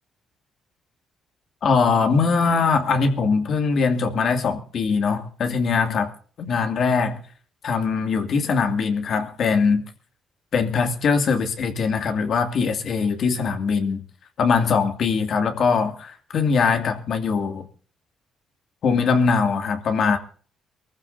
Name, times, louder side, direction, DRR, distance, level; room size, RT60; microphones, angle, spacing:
voice 1, 1.6-6.1 6.4-7.2 7.6-9.8 10.5-14.0 14.4-17.7 18.8-20.2, left 5 dB, 60° left, 2.5 m, -21 dB
23.5 x 14.5 x 2.8 m
cardioid pair, 90°, 0 cm